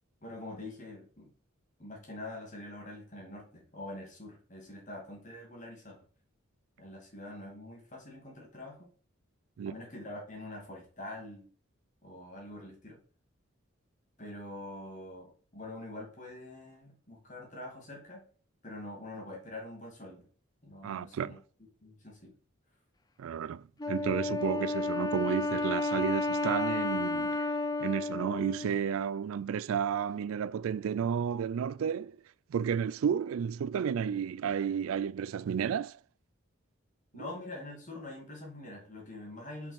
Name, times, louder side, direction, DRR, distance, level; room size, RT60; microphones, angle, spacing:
voice 1, 0.2-1.3 1.8-6.0 6.8-8.9 9.6-11.4 12.0-13.0 14.2-18.2 18.6-20.3 20.6-21.4 21.8-22.3 37.1-39.7, left 1 dB, 35° left, 2.4 m, -45 dB
voice 2, 20.8-21.4 23.2-27.5 27.8-32.2 32.5-36.0 37.2-37.3, right 7 dB, 80° right, 0.3 m, -32 dB
Wind instrument woodwind instrument, 23.8-29.2, left 2 dB, 20° left, 0.4 m, -32 dB
5.4 x 5.1 x 4.8 m
head